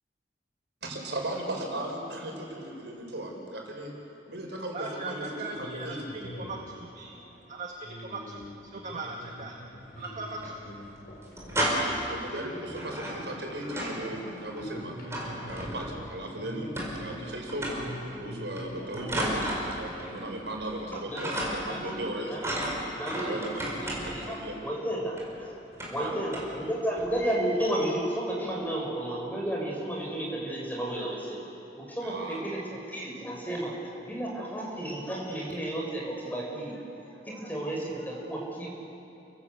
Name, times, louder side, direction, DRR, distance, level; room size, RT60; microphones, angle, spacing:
voice 1, 0.8-3.9 4.3-6.0 7.2-7.3 11.6-15.0 15.4-16.7 17.0-19.4 19.7-22.3 23.1-23.5 24.0-24.6 25.9-26.2 32.0-32.4, right 1 dB, 80° right, 0 dB, 5.4 m, -37 dB
voice 2, 4.7-5.9 6.1-7.2 7.5-7.7 8.0-8.4 8.7-9.5 10.0-10.5, right 3 dB, 45° right, 0 dB, 1.7 m, -38 dB
sound 1, 5.5-20.8, equal, 60° left, 5.3 m, -44 dB
sound 2, 9.8-10.5 10.8-10.9 11.2-12.1 12.7-14.1 14.3-16.1 16.8-17.2 17.5-18.0 18.6-20.2 20.5-20.9 21.2-21.8 22.4-24.3 25.2-25.3 25.7-26.0 26.3-26.6 27.0-27.2, right 1 dB, 15° right, 5.5 m, -33 dB
voice 3, 22.9-23.5 23.7-25.5 25.8-31.5 31.8-32.6 32.9-33.8 34.0-38.7, right 1 dB, 10° left, -2 dB, 6.1 m, -32 dB
29.5 x 19.5 x 8.3 m, 2.8 s
head